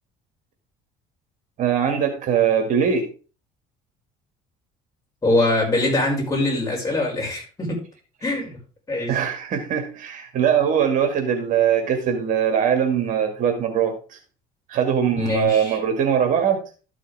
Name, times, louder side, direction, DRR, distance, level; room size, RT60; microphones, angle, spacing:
voice 1, 1.6-3.1 9.1-14.2 14.7-16.6, right 8 dB, 55° right, 5 dB, 1.9 m, -21 dB
voice 2, 5.2-7.8 8.2-8.6 8.9-9.2 15.1-15.8, left 2 dB, 20° left, -2 dB, 5.7 m, -23 dB
13.0 x 6.3 x 3.4 m, 0.35 s
cardioid pair, 110°, 16 cm